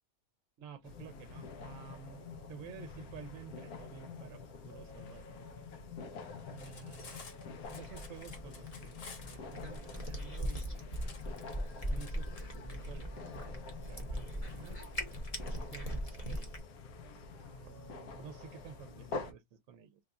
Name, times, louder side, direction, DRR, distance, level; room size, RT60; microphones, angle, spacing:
voice 1, 0.6-5.5 6.5-11.1 11.9-14.8 15.4-16.6 17.3-20.0, right 8 dB, 65° right, 0.9 m, -52 dB
sound 1, 0.8-19.3, left 4 dB, 80° left, 1.2 m, -47 dB
Cutlery silverware, 6.5-12.1, left 5 dB, 60° left, 1.4 m, -52 dB
Cat, 7.6-16.6, equal, 30° left, 0.9 m, -40 dB
3.4 x 2.4 x 3.8 m
omnidirectional pair, 1.5 m